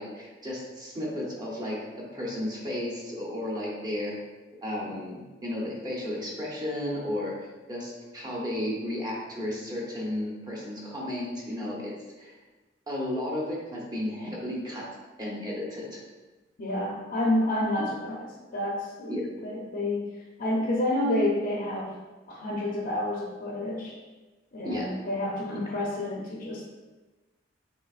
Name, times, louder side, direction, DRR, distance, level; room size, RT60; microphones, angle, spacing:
voice 1, 0.0-4.1 4.6-7.3 7.7-12.4 12.9-14.8 15.2-16.0 19.1-19.2 24.6-24.9 25.5-25.7, left 1 dB, 20° right, -4 dB, 1.0 m, -33 dB
voice 2, 16.6-18.3 18.5-19.1 19.4-20.0 20.4-21.9 22.3-23.9 24.5-26.6, left 1 dB, 55° left, -3 dB, 0.7 m, -29 dB
6.1 x 3.4 x 2.5 m, 1.2 s
head